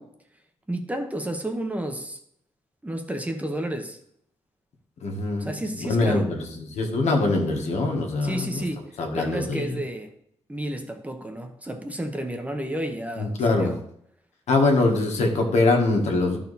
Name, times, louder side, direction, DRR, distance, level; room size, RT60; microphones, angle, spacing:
voice 1, 0.7-2.2 2.8-4.0 5.4-6.3 8.2-10.1 10.5-13.8, right 1 dB, 15° right, 6 dB, 0.9 m, -31 dB
voice 2, 5.0-5.5 5.8-8.6 9.0-9.7 13.2-13.8 14.5-16.4, left 2 dB, 90° left, 1 dB, 1.6 m, -23 dB
12.0 x 4.3 x 4.1 m, 0.71 s
wide cardioid pair, 115°, 11 cm